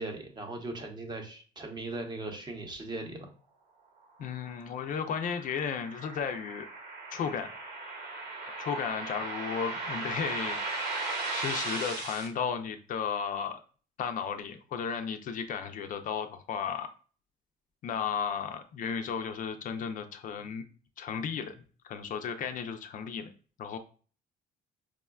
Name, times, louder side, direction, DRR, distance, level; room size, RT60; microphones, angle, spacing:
voice 1, 0.0-3.3, right 2 dB, 25° right, 3 dB, 0.7 m, -38 dB
voice 2, 4.2-6.7 7.1-7.5 8.6-10.6 11.3-13.6 14.0-16.9 17.8-20.6 21.0-23.3 23.6-23.8, left 7 dB, 50° left, 8 dB, 0.4 m, -34 dB
sound 1, 4.4-12.3, right 3 dB, 75° right, 1.0 m, -37 dB
4.7 x 2.1 x 2.3 m, 0.40 s
cardioid pair, 110°, 17 cm